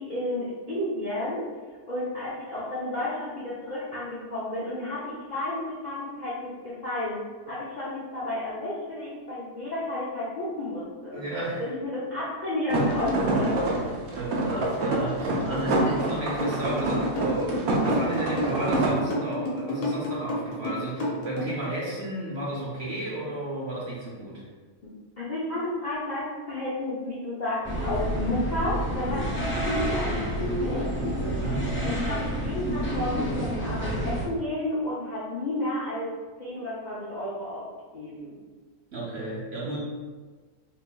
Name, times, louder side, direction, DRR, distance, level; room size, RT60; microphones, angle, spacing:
voice 1, 0.0-1.5 1.9-7.2 7.5-11.2 11.7-13.6 24.8-24.9 25.2-30.9 31.8-36.1 36.4-37.7 37.9-38.4, left 1 dB, 50° left, -9 dB, 0.5 m, -32 dB
voice 2, 11.1-11.7 14.1-24.4 31.4-31.8 38.9-39.8, right 1 dB, 50° right, -5 dB, 1.0 m, -33 dB
sound 1, 12.7-18.9, right 1 dB, 70° right, 1.1 m, -26 dB
sound 2, 16.4-21.7, left 1 dB, 75° left, 1.3 m, -30 dB
sound 3, 27.6-34.2, equal, 10° left, 0.8 m, -29 dB
4.2 x 3.2 x 2.2 m, 1.4 s
omnidirectional pair, 1.6 m